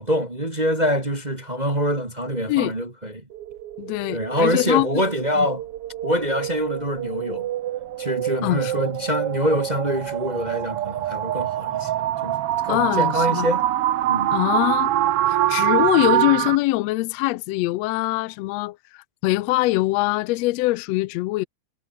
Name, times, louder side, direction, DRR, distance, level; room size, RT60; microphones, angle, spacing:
voice 1, 0.0-3.2 4.1-5.6 6.0-7.5 8.0-12.4 12.6-13.6 14.1-14.3, equal, 15° right, 2.2 m, -25 dB
sound 1, 3.3-16.6, right 13 dB, 65° right, 1.6 m, -25 dB
voice 2, 3.8-4.9 5.4-5.5 8.4-8.7 12.7-13.4 14.3-14.9 15.3-21.5, left 19 dB, 80° left, 1.5 m, -23 dB
omnidirectional pair, 3.5 m